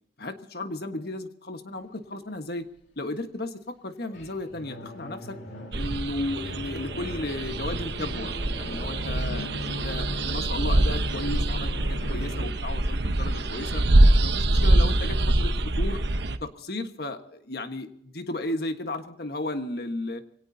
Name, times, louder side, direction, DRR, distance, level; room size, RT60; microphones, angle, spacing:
voice 1, 0.2-2.7 3.0-5.4 5.7-13.8 14.2-16.0 16.4-20.2, left 2 dB, 55° left, 7 dB, 1.4 m, -34 dB
sound 1, 4.0-12.5, left 1 dB, 70° left, 3.1 m, -38 dB
sound 2, 5.7-16.4, right 1 dB, 60° right, 1.0 m, -24 dB
25.0 x 18.0 x 2.8 m, 0.68 s
head